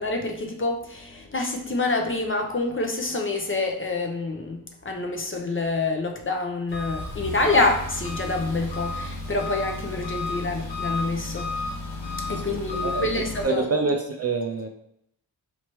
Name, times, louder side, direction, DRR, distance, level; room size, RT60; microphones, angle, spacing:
voice 1, 0.0-4.6 4.8-11.5 12.3-13.6, left 2 dB, 30° left, 3 dB, 0.6 m, -27 dB
Engine, 6.7-13.4, left 2 dB, 80° left, 1.6 m, -32 dB
voice 2, 13.4-14.7, right 3 dB, 35° right, 3 dB, 0.4 m, -25 dB
4.2 x 3.1 x 3.0 m, 0.75 s
wide cardioid pair, 90°, 44 cm